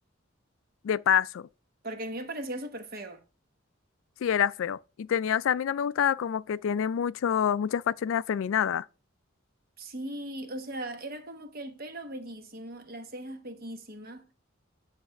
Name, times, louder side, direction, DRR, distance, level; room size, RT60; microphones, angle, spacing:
voice 1, 0.8-1.5 4.2-8.9, left 8 dB, 75° left, 0.3 m, -27 dB
voice 2, 1.8-3.2 9.8-14.3, right 1 dB, 45° right, 1.1 m, -38 dB
9.4 x 3.3 x 5.8 m
head